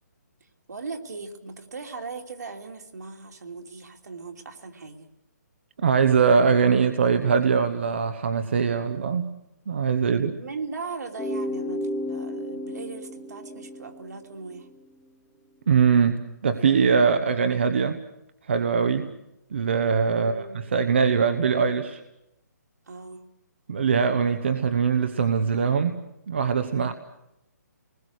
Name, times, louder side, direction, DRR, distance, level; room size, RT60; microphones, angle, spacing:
voice 1, 0.4-5.1 10.4-14.7 20.1-20.6 22.9-23.2 26.7-26.9, right 4 dB, 70° right, 4 dB, 2.9 m, -38 dB
voice 2, 5.8-9.3 9.7-10.4 15.7-18.0 18.5-19.1 19.5-22.0 23.7-26.0 26.3-26.9, right 6 dB, 40° right, 8 dB, 1.0 m, -22 dB
sound 1, 11.2-14.8, left 1 dB, 5° left, 1.3 m, -33 dB
29.5 x 20.5 x 6.5 m, 0.85 s
hypercardioid pair, 180°, 9 cm